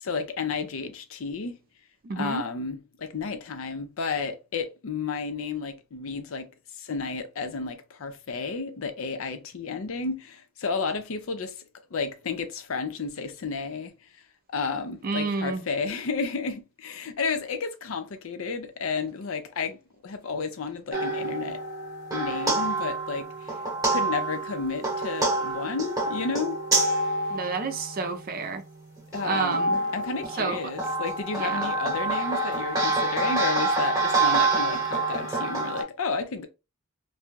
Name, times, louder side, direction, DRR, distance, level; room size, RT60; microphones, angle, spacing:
voice 1, 0.0-1.6 2.2-6.5 6.8-11.6 11.9-13.9 14.5-19.8 20.0-21.6 22.1-23.5 23.9-26.6 29.1-29.6 29.9-36.5, left 4 dB, 65° left, 0.5 m, -32 dB
voice 2, 2.0-2.4 15.0-15.6 27.3-28.6 29.2-29.9 30.4-30.7 31.4-31.7, right 4 dB, 45° right, 0.5 m, -30 dB
sound 1, 20.9-28.3 29.0-35.8, right 2 dB, 15° right, 1.0 m, -27 dB
2.6 x 2.2 x 3.0 m
head